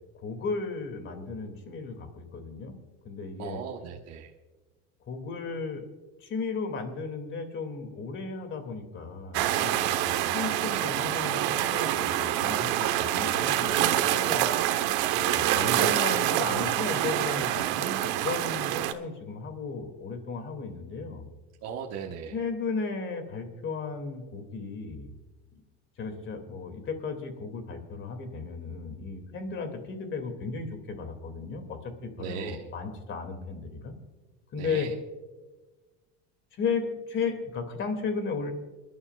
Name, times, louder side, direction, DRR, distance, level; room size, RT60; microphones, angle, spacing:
voice 1, 0.1-2.8 3.0-3.6 5.1-5.8 6.2-14.4 15.1-21.2 22.3-25.1 26.0-34.0 34.5-34.9 36.6-38.5, left 4 dB, 35° left, 7 dB, 2.5 m, -35 dB
voice 2, 3.4-4.3 21.6-22.3 32.2-32.6 34.6-34.9, right 7 dB, 50° right, 0 dB, 1.3 m, -37 dB
sound 1, 9.3-18.9, right 13 dB, 70° right, 1.1 m, -26 dB
27.0 x 11.5 x 2.4 m, 1.2 s
supercardioid pair, 130°, 33 cm